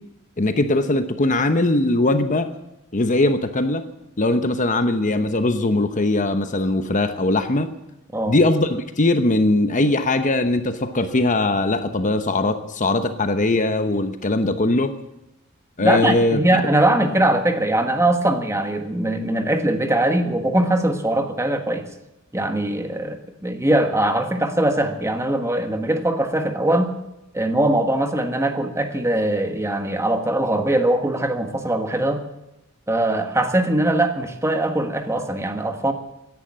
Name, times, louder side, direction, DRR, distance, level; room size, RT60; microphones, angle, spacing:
voice 1, 0.4-2.5 2.9-3.9 4.2-7.7 8.3-14.9 15.8-16.4, left 2 dB, 35° left, 9 dB, 0.9 m, -20 dB
voice 2, 15.8-21.9 22.3-26.9 27.3-32.2 32.9-35.9, right 1 dB, 15° right, 6 dB, 1.5 m, -21 dB
16.5 x 10.5 x 7.5 m, 0.93 s
head